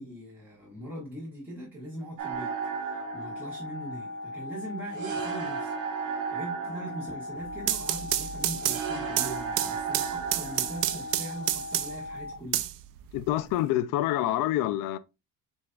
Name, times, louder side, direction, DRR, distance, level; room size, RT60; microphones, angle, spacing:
voice 1, 0.0-12.7, right 1 dB, 5° right, 1.4 m, -41 dB
sound 1, 2.2-12.2, right 8 dB, 70° right, 1.0 m, -36 dB
sound 2, 2.3-12.3, left 3 dB, 55° left, 1.1 m, -39 dB
sound 3, 7.4-12.1 12.5-13.5, right 14 dB, 85° right, 0.5 m, -30 dB
voice 2, 13.1-15.0, left 13 dB, 85° left, 0.5 m, -27 dB
7.6 x 2.7 x 2.2 m
cardioid pair, 155°, 32 cm